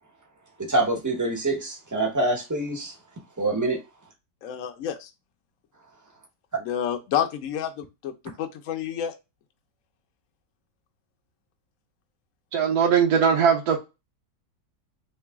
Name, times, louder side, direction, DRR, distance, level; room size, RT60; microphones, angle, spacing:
voice 1, 0.7-2.9 3.4-3.8, right 2 dB, 20° right, 0.5 m, -25 dB
voice 2, 4.4-5.1 6.6-9.1, left 9 dB, 70° left, 0.8 m, -29 dB
voice 3, 12.5-13.8, right 7 dB, 70° right, 1.1 m, -20 dB
3.1 x 2.9 x 3.4 m
omnidirectional pair, 1.8 m